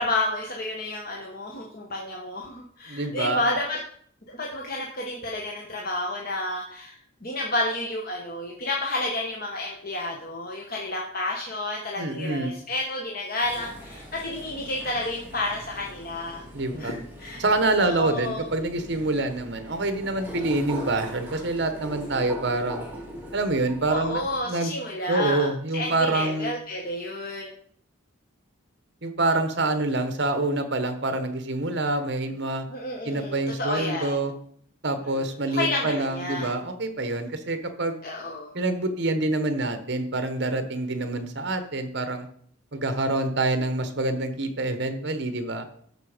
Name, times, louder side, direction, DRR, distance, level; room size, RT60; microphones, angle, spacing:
voice 1, 0.0-3.8 4.3-16.4 16.8-17.4 17.8-18.5 23.9-27.5 32.7-34.2 35.5-36.5 38.0-38.5, left 2 dB, 45° left, 0 dB, 1.1 m, -30 dB
voice 2, 2.9-3.4 12.0-12.5 16.5-17.0 17.4-22.9 23.3-24.8 25.1-26.5 29.0-32.6 33.0-34.3 34.8-38.0 38.5-42.3 42.7-45.6, right 2 dB, 55° right, 9 dB, 1.2 m, -26 dB
sound 1, 13.4-24.4, equal, 10° right, 2.1 m, -41 dB
13.5 x 5.0 x 5.1 m, 0.62 s
head